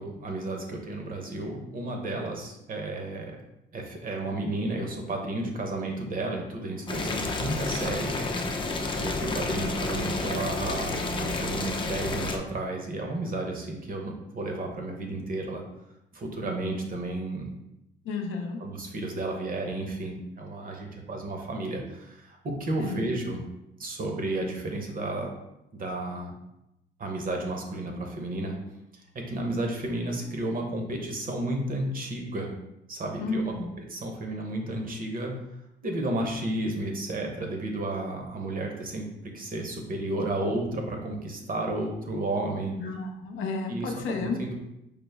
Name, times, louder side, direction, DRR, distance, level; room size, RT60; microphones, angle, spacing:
voice 1, 0.0-3.4 3.7-8.5 8.9-15.6 16.1-17.5 18.6-23.4 23.8-25.3 25.7-26.3 27.0-28.6 28.9-32.5 32.9-35.4 35.8-42.8 43.7-44.5, right 2 dB, 45° right, 2 dB, 0.9 m, -32 dB
Boiling, 6.9-12.4, left 3 dB, 25° left, 0.5 m, -30 dB
voice 2, 7.0-7.4 18.1-18.6 22.8-23.0 33.2-33.7 42.8-43.0 43.2-44.4, left 4 dB, 85° left, 3 dB, 0.5 m, -32 dB
5.0 x 2.0 x 3.4 m, 0.86 s
cardioid pair, 90°, 20 cm